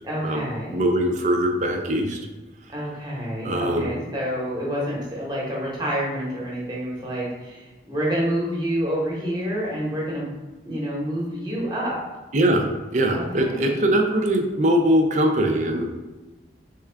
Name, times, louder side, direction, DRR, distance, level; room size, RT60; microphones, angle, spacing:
voice 1, 0.0-0.8 2.7-10.3 10.6-12.0 13.1-13.8, equal, 25° right, -5 dB, 0.9 m, -28 dB
voice 2, 0.7-2.2 3.4-3.9 12.3-15.9, right 1 dB, 45° right, 4 dB, 0.4 m, -21 dB
3.6 x 2.3 x 3.3 m, 1.2 s
head